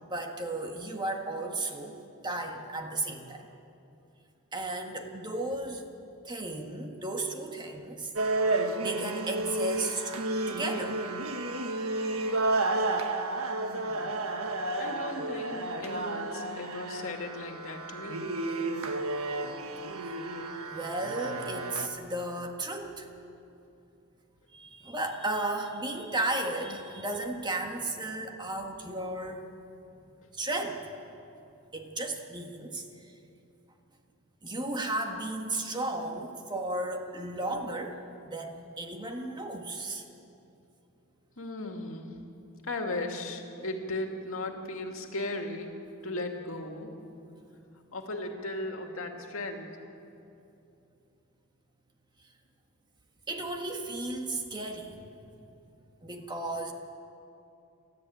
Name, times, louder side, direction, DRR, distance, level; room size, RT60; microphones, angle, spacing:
voice 1, 0.1-2.0 2.2-3.5 4.5-5.8 6.2-8.1 8.6-10.2 10.5-11.0 20.6-23.1 24.5-29.5 30.3-30.9 31.7-32.9 34.4-40.0 53.3-55.0 56.0-56.7, right 2 dB, 20° right, 3 dB, 1.7 m, -34 dB
sound 1, 8.2-21.9, right 2 dB, 85° right, 1.5 m, -32 dB
voice 2, 13.5-14.2 14.8-18.3 41.4-42.1 42.6-45.7 46.0-46.9 47.9-49.7, left 2 dB, 70° left, 3 dB, 2.4 m, -37 dB
29.0 x 13.5 x 8.8 m, 2.8 s
head